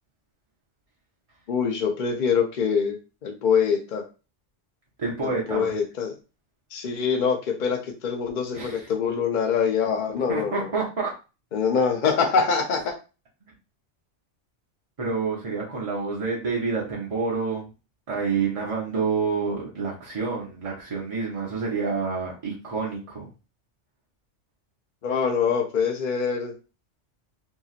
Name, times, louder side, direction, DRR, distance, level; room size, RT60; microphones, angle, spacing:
voice 1, 1.5-3.0 3.2-4.0 5.5-6.1 6.7-10.7 11.5-12.9 25.0-26.5, left 6 dB, 55° left, 3 dB, 0.6 m, -24 dB
voice 2, 5.0-5.7 8.5-8.9 10.3-11.1 15.0-17.7 18.1-23.3, right 4 dB, 40° right, -4 dB, 0.6 m, -28 dB
2.9 x 2.8 x 2.4 m, 0.31 s
omnidirectional pair, 1.2 m